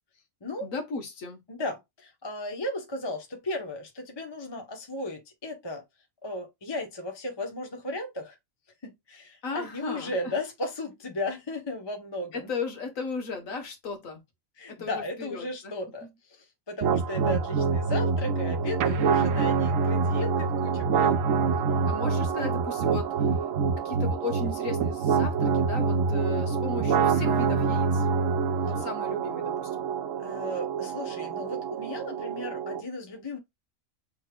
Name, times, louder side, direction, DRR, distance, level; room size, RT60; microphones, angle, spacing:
voice 1, 0.6-1.4 9.4-10.3 12.3-14.2 14.7-15.7 16.0-16.1 21.9-23.4 23.8-28.1 28.6-29.9, left 4 dB, 75° left, 1.6 m, -36 dB
voice 2, 1.5-5.8 6.2-8.4 8.8-12.5 14.6-16.1 16.7-21.2 28.7-28.8 30.2-33.4, left 1 dB, 25° left, 0.8 m, -35 dB
sound 1, 16.8-32.8, right 5 dB, 75° right, 1.0 m, -26 dB
6.1 x 3.5 x 2.2 m
omnidirectional pair, 1.4 m